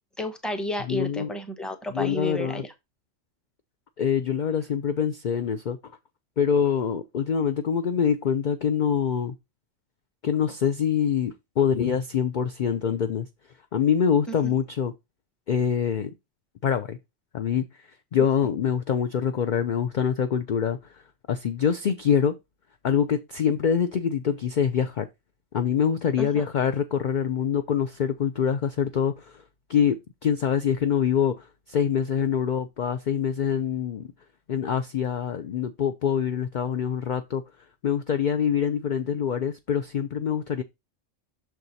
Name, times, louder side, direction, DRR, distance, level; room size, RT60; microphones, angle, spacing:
voice 1, 0.2-2.7 14.3-14.5 26.2-26.5, left 1 dB, ahead, 0.9 m, -32 dB
voice 2, 0.9-1.3 1.9-2.6 4.0-5.8 6.4-9.3 10.2-13.3 13.7-14.9 15.5-16.1 16.6-17.0 17.3-17.7 18.1-20.8 21.3-22.4 22.8-25.1 25.5-29.4 29.7-34.1 34.5-37.4 37.8-40.6, left 8 dB, 55° left, 0.5 m, -25 dB
6.5 x 4.6 x 4.0 m
omnidirectional pair, 1.3 m